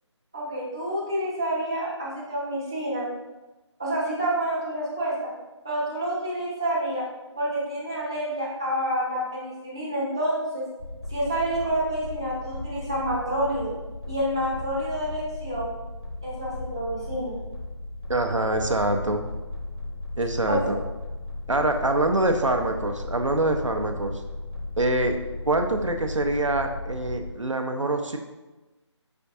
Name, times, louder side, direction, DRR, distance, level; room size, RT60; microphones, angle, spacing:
voice 1, 0.3-3.0 3.8-5.1 5.6-7.0 7.4-10.6 11.1-13.7 14.1-15.7 16.2-17.3 20.5-20.6, right 1 dB, 10° right, -8 dB, 0.3 m, -28 dB
sound 1, 10.8-27.3, left 2 dB, 55° left, 0.6 m, -36 dB
voice 2, 18.1-19.2 20.2-20.8 21.5-24.1 24.8-25.2 25.5-28.2, right 2 dB, 90° right, 5 dB, 0.6 m, -24 dB
5.2 x 3.4 x 2.7 m, 1.1 s
figure-of-eight pair, 155°, 16 cm